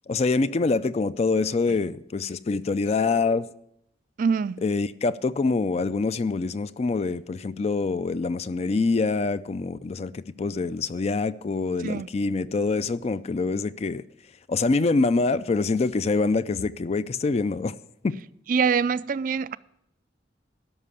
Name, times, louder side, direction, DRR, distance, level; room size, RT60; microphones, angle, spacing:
voice 1, 0.1-3.5 4.6-14.0 14.5-17.7 18.0-18.1, left 3 dB, 35° left, 0.4 m, -25 dB
voice 2, 4.2-4.6 11.8-12.1 18.5-19.6, right 6 dB, 50° right, 0.3 m, -24 dB
12.5 x 5.7 x 8.3 m
head